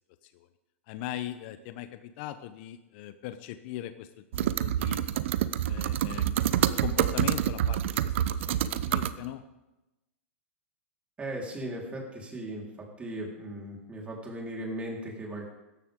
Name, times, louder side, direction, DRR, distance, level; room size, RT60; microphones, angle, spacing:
voice 1, 0.9-4.1 4.4-5.1 5.7-9.4, left 13 dB, 50° left, 11 dB, 0.8 m, -39 dB
sound 1, 4.3-9.1, right 11 dB, 60° right, 0.7 m, -27 dB
voice 2, 11.2-12.6 13.0-15.5, right 1 dB, 15° right, -1 dB, 4.0 m, -37 dB
17.0 x 13.5 x 3.7 m, 1.0 s
hypercardioid pair, 110°, 7 cm